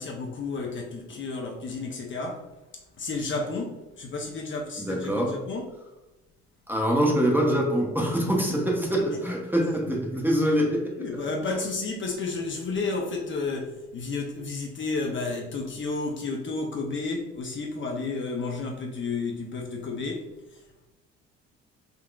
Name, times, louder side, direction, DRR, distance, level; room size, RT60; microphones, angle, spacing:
voice 1, 0.0-2.5 3.0-5.8 8.5-9.7 11.0-20.3, left 3 dB, 35° left, 1 dB, 0.6 m, -32 dB
voice 2, 4.8-5.4 6.7-11.2, equal, 5° right, -1 dB, 0.7 m, -24 dB
3.7 x 2.3 x 2.3 m, 1.0 s
hypercardioid pair, 65°, 32 cm